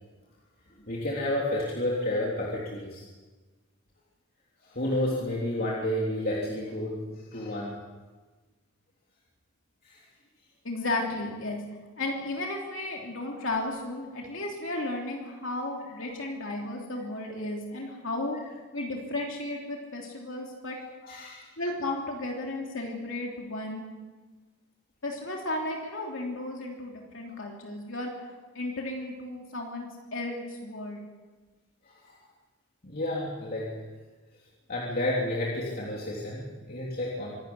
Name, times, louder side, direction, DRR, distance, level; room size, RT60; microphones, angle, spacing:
voice 1, 0.8-3.0 4.6-7.8 9.8-10.0 21.0-21.5 31.8-32.2 32.8-33.8 34.7-37.3, left 1 dB, 40° left, -4 dB, 3.3 m, -31 dB
voice 2, 10.6-11.6 12.0-20.8 21.6-23.8 25.0-28.2 28.5-31.0, left 2 dB, 60° left, 0 dB, 3.3 m, -34 dB
25.0 x 13.5 x 9.6 m, 1.3 s
head